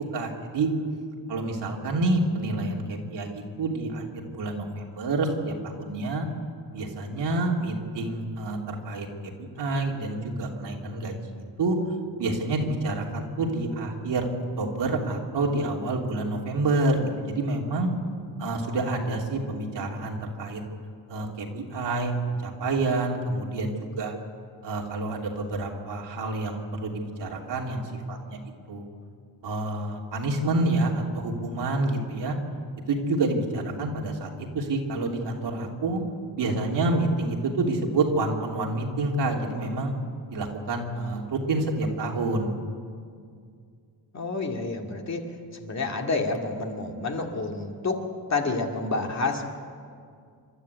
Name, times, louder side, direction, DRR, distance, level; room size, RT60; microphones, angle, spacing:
voice 1, 0.1-0.7 1.3-6.3 6.7-9.3 9.6-11.2 11.6-11.8 12.2-14.3 14.6-17.9 18.4-20.6 21.1-24.1 24.6-28.4 28.7-28.8 29.4-32.4 32.9-36.0 36.4-39.9 40.3-42.5, right 2 dB, 80° right, -1 dB, 3.1 m, -28 dB
voice 2, 44.1-45.2 45.5-49.5, left 3 dB, 40° left, 2 dB, 2.3 m, -29 dB
28.0 x 12.5 x 8.2 m, 2.2 s
wide cardioid pair, 140°, 42 cm